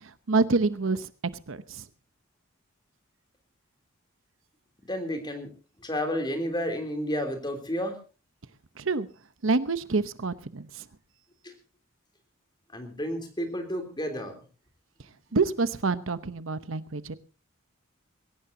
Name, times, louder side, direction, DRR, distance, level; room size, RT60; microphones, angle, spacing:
voice 1, 0.3-1.1 1.5-1.8 8.8-9.1 9.4-10.8 15.3-17.1, right 3 dB, 75° right, 13 dB, 0.9 m, -27 dB
voice 2, 4.9-5.5 5.8-8.0 11.4-11.5 12.7-14.3, equal, 20° left, 6 dB, 3.4 m, -31 dB
21.5 x 17.5 x 2.8 m, 0.34 s
head